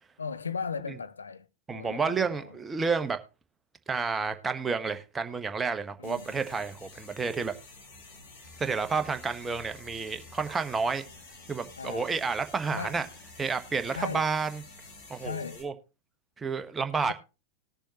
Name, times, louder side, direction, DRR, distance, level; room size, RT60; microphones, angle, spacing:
voice 1, 0.2-1.5 1.7-2.5 6.0-6.5 11.8-12.1 12.7-13.0 13.9-14.3 15.2-15.6 17.0-17.1, left 5 dB, 75° left, 0.6 m, -37 dB
voice 2, 1.7-3.2 3.9-7.5 8.6-11.0 11.5-13.0 13.4-14.6 15.1-15.7 16.4-17.1, right 5 dB, 15° right, 1.1 m, -30 dB
sound 1, 6.0-15.6, left 3 dB, 55° left, 3.3 m, -50 dB
19.5 x 6.9 x 2.9 m
figure-of-eight pair, 90°, 0 cm